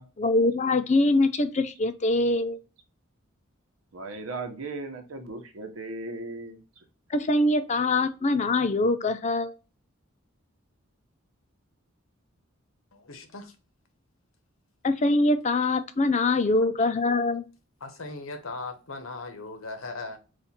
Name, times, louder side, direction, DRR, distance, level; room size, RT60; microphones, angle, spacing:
voice 1, 0.2-2.6 7.1-9.5 14.8-17.4, left 2 dB, 35° left, 0.5 m, -23 dB
voice 2, 3.9-6.6, right 3 dB, 85° right, 1.0 m, -37 dB
voice 3, 12.9-13.5 16.2-16.9 17.8-20.2, left 3 dB, 85° left, 1.0 m, -39 dB
4.3 x 2.5 x 4.2 m
head